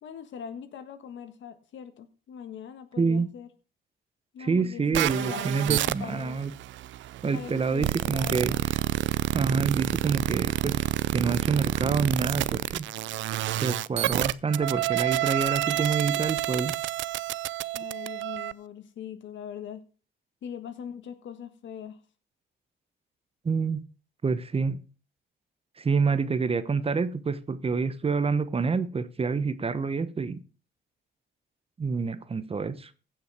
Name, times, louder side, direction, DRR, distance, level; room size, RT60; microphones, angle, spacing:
voice 1, 0.0-3.5 4.3-6.4 7.3-8.6 17.7-19.8 20.4-22.0, left 8 dB, 70° left, 1.6 m, -41 dB
voice 2, 3.0-3.3 4.4-6.5 7.2-8.6 9.3-10.8 11.1-12.9 13.6-16.7 23.4-23.8 24.2-24.8 25.8-30.4 31.8-32.9, right 5 dB, 30° right, 0.9 m, -27 dB
sound 1, 4.9-18.5, right 15 dB, 75° right, 0.4 m, -29 dB
16.0 x 5.8 x 4.8 m
cardioid pair, 90°, 20 cm